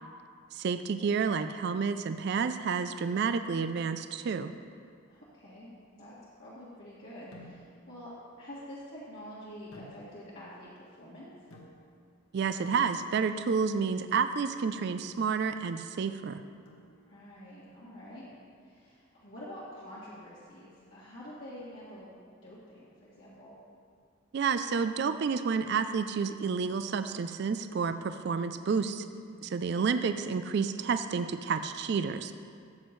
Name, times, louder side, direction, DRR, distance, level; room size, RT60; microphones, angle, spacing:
voice 1, 0.5-4.5 12.3-16.4 24.3-29.1 29.4-32.3, right 5 dB, 55° right, 10 dB, 0.3 m, -30 dB
voice 2, 5.1-8.1 8.4-11.3 17.0-18.2 18.6-23.6 29.1-29.5, equal, 60° left, -10 dB, 1.8 m, -47 dB
sound 1, 7.3-7.9 9.7-10.4 11.5-12.1 12.6-13.4 14.8-15.1 16.6-17.3, left 1 dB, 90° left, 1.6 m, -53 dB
13.5 x 7.9 x 3.1 m, 2.2 s
head